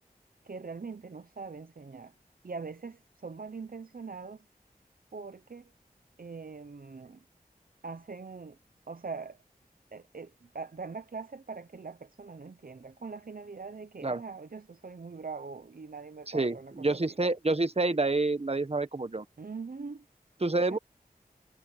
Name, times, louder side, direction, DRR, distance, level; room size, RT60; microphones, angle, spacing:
voice 1, 0.4-2.1 2.4-4.5 5.1-5.7 6.2-7.2 7.8-8.6 8.9-9.4 9.9-17.1 19.4-20.1 20.4-20.8, right 4 dB, 65° right, 0.9 m, -42 dB
voice 2, 16.3-19.2 20.4-20.8, right 2 dB, 40° right, 1.4 m, -28 dB
wide cardioid pair, 45°, 16 cm